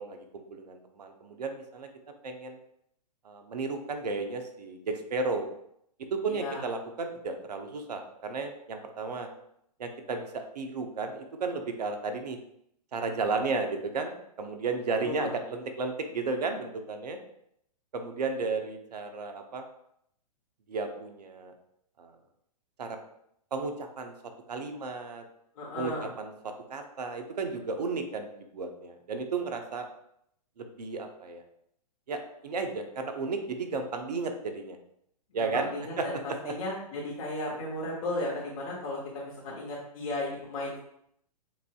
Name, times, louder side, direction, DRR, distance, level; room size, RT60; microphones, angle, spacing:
voice 1, 0.0-1.9 2.2-2.6 3.2-5.5 6.1-9.3 9.8-12.4 12.9-17.2 17.9-19.6 20.7-21.5 22.0-22.1 22.8-23.0 23.5-24.1 24.5-25.2 25.8-26.3 26.7-29.9 30.6-31.4 32.1-34.8 35.3-36.5, right 4 dB, 75° right, 5 dB, 0.8 m, -33 dB
voice 2, 6.3-6.6 15.0-15.3 25.5-26.1 35.4-40.8, left 2 dB, 55° left, -5 dB, 1.6 m, -35 dB
7.1 x 2.7 x 2.3 m, 0.73 s
hypercardioid pair, 120°, 21 cm